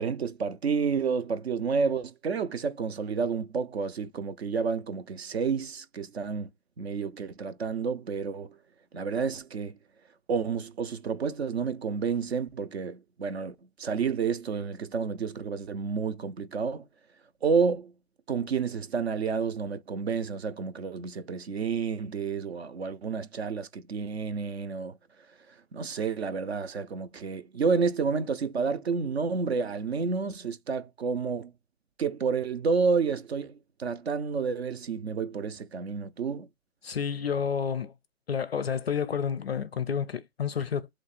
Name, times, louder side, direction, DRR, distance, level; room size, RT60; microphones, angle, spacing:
voice 1, 0.0-6.5 6.8-8.6 8.9-9.8 10.3-16.9 17.4-17.9 18.3-25.0 25.7-31.5 32.0-36.5, right 5 dB, 50° right, 0.6 m, -30 dB
voice 2, 36.8-37.9 38.3-40.9, left 7 dB, 50° left, 0.4 m, -30 dB
3.4 x 3.2 x 4.1 m
hypercardioid pair, 175°, 42 cm